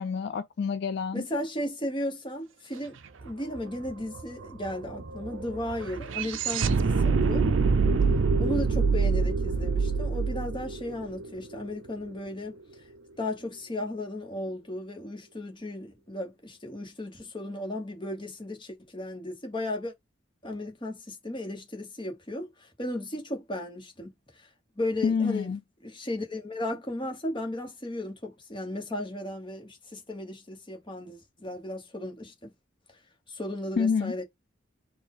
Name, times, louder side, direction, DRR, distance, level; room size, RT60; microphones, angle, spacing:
voice 1, 0.0-1.3 25.0-25.6 33.8-34.1, left 5 dB, 55° left, 0.3 m, -27 dB
voice 2, 1.1-3.0 3.2-7.5 8.4-12.6 13.2-19.9 20.4-24.1 24.4-24.5 24.8-25.5 25.8-32.5 33.3-34.2, left 1 dB, 25° left, 1.3 m, -35 dB
sound 1, 3.2-3.3 3.5-11.8, right 4 dB, 75° right, 0.5 m, -26 dB
4.2 x 2.6 x 3.8 m
head